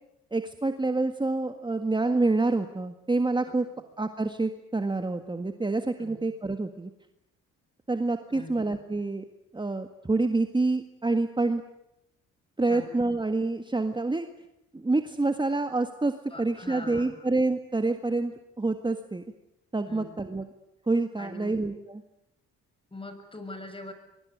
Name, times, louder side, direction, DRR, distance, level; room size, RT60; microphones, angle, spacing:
voice 1, 0.3-3.6 4.0-6.9 7.9-9.2 9.5-11.6 12.6-14.3 14.7-16.1 16.4-19.2 19.7-20.5 20.9-22.0, right 3 dB, 15° right, 7 dB, 1.7 m, -27 dB
voice 2, 8.3-8.7 12.6-13.0 16.3-17.3 19.9-20.1 21.2-21.6 22.9-23.9, left 1 dB, 15° left, 8 dB, 6.6 m, -42 dB
24.5 x 23.5 x 9.5 m, 0.86 s
cardioid pair, 90°, 30 cm